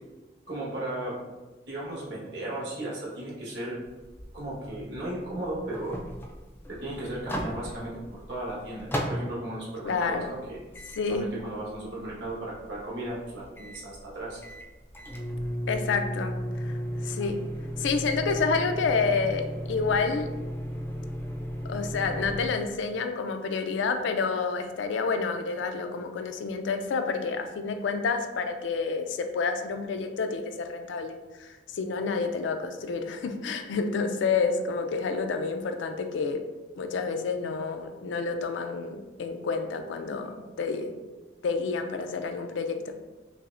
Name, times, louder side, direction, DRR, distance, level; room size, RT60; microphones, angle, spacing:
voice 1, 0.5-1.1 1.7-3.8 4.3-6.0 6.7-10.6 11.1-14.4, right 1 dB, 70° right, -5 dB, 1.2 m, -35 dB
sound 1, 3.9-9.4 9.8-22.5, equal, 10° left, 0.3 m, -35 dB
voice 2, 9.8-10.3 11.0-11.3 15.7-17.4 17.8-20.3 21.7-36.4 36.8-40.9 41.4-42.9, left 4 dB, 85° left, 7 dB, 0.4 m, -29 dB
5.5 x 2.0 x 2.5 m, 1.2 s
head